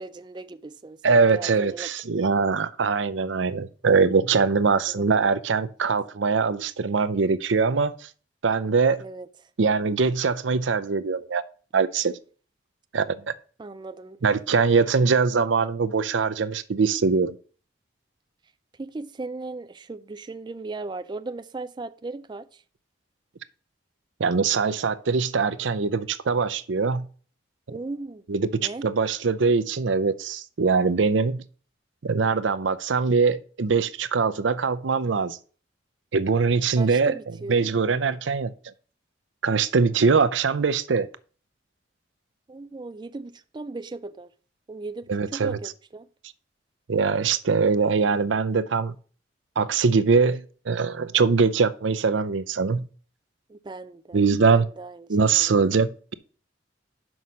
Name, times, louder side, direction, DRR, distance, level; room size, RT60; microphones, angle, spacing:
voice 1, 0.0-1.9 4.9-5.4 9.0-9.3 13.6-14.2 18.7-22.6 27.7-28.2 28.6-28.9 36.7-37.7 42.5-44.3 44.7-46.1 53.5-54.2 54.5-55.7, right 3 dB, 25° right, 0.3 m, -37 dB
voice 2, 1.0-8.1 8.4-9.0 9.6-11.4 11.7-12.2 12.9-13.3 14.2-17.3 24.2-27.1 28.3-28.5 28.8-31.4 32.0-35.4 36.1-37.1 37.5-38.5 39.4-41.1 45.1-45.6 46.9-49.0 49.6-52.9 54.1-54.7 55.1-56.1, right 5 dB, 85° right, 0.6 m, -22 dB
6.1 x 5.5 x 6.2 m
head